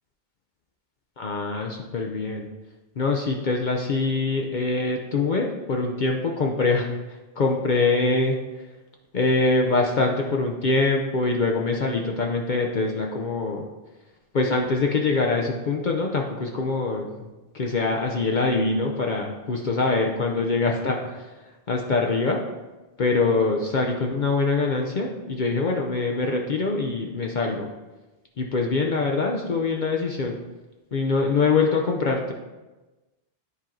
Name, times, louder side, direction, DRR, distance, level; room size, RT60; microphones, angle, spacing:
voice 1, 1.2-2.5 3.0-8.4 9.1-13.6 14.3-17.3 17.5-21.3 21.7-22.4 23.0-27.7 28.4-30.4 30.9-32.3, left 3 dB, 55° left, 1 dB, 0.8 m, -24 dB
9.8 x 4.5 x 3.8 m, 1.1 s
omnidirectional pair, 1.0 m